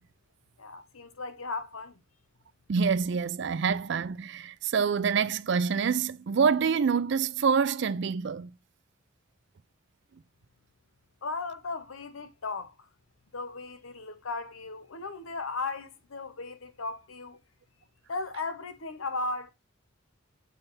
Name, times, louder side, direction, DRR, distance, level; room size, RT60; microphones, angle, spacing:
voice 1, 0.6-2.0 11.2-12.9 13.3-17.4 18.1-19.5, left 3 dB, 90° left, 1.0 m, -36 dB
voice 2, 2.7-8.5, right 6 dB, 60° right, 0.4 m, -26 dB
7.2 x 3.5 x 4.0 m
head